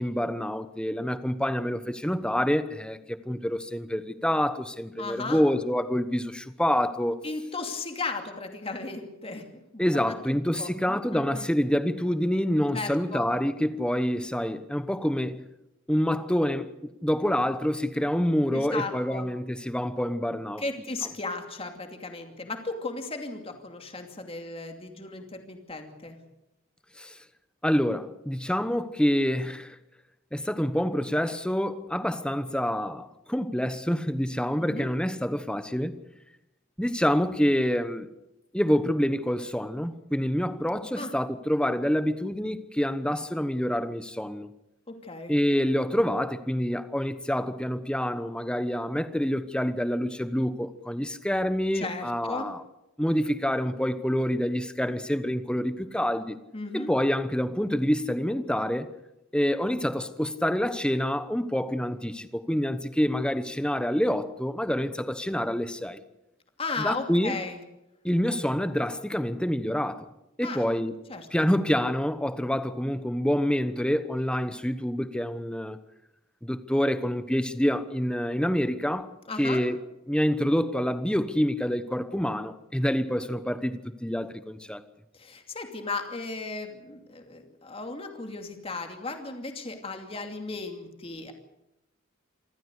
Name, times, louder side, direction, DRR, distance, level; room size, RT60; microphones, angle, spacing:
voice 1, 0.0-7.2 9.8-15.4 15.9-20.6 27.0-27.2 27.6-29.8 30.3-36.0 36.8-38.1 38.5-44.5 45.3-52.6 53.0-56.4 56.7-58.9 59.3-66.0 66.8-67.3 68.0-70.1 70.4-71.0 71.3-75.8 76.4-79.1 79.4-79.8 80.1-84.8, equal, 5° left, 1.0 m, -27 dB
voice 2, 5.0-5.5 7.2-11.5 12.7-13.3 18.5-19.3 20.6-26.2 34.6-34.9 41.0-41.1 44.9-45.3 51.7-52.5 56.5-56.9 66.6-67.6 70.4-70.6 71.1-71.3 79.3-79.6 85.1-91.3, left 3 dB, 30° left, 2.7 m, -36 dB
26.5 x 14.5 x 8.2 m
head